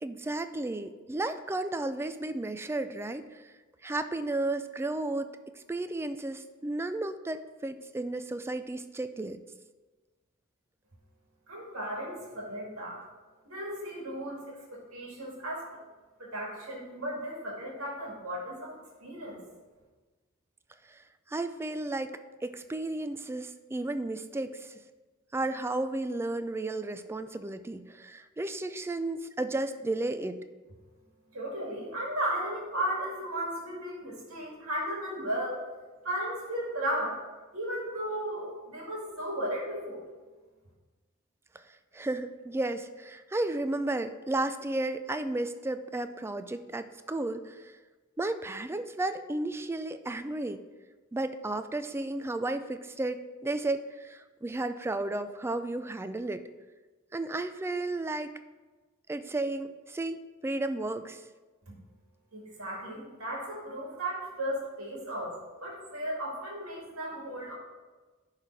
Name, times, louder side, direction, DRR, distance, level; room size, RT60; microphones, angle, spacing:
voice 1, 0.0-3.5 3.8-5.3 5.5-9.4 20.9-21.0 21.3-24.8 25.3-30.4 41.5-41.6 41.9-47.7 48.2-50.6 51.1-56.4 57.1-58.3 59.1-61.2, right 2 dB, 10° right, 10 dB, 0.3 m, -33 dB
voice 2, 11.5-13.0 13.5-15.8 16.2-18.7 19.0-19.4 31.3-35.6 36.0-37.2 37.5-40.1 61.7-61.8 62.3-67.5, right 1 dB, 80° right, -3 dB, 2.0 m, -35 dB
10.5 x 3.9 x 4.5 m, 1.3 s
head